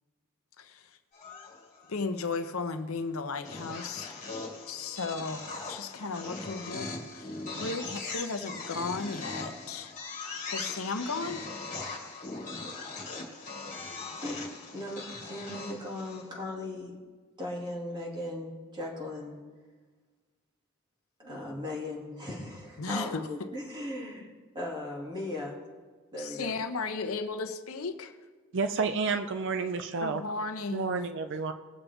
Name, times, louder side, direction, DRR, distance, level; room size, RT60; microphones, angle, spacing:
sound 1, 1.1-1.9 3.5-16.4, left 3 dB, 35° left, 2.1 m, -40 dB
voice 1, 1.9-4.1 4.7-7.3 7.5-9.9 10.5-11.4 22.8-23.3 26.2-28.1 30.0-31.1, left 4 dB, 80° left, 8 dB, 0.9 m, -35 dB
voice 2, 14.7-17.0 17.4-19.4 21.2-24.3 24.5-25.6 26.1-26.6, left 1 dB, 20° right, -2 dB, 2.7 m, -37 dB
voice 3, 28.5-30.2 30.7-31.5, right 4 dB, 60° right, 8 dB, 0.6 m, -30 dB
20.5 x 7.2 x 3.5 m, 1.4 s
head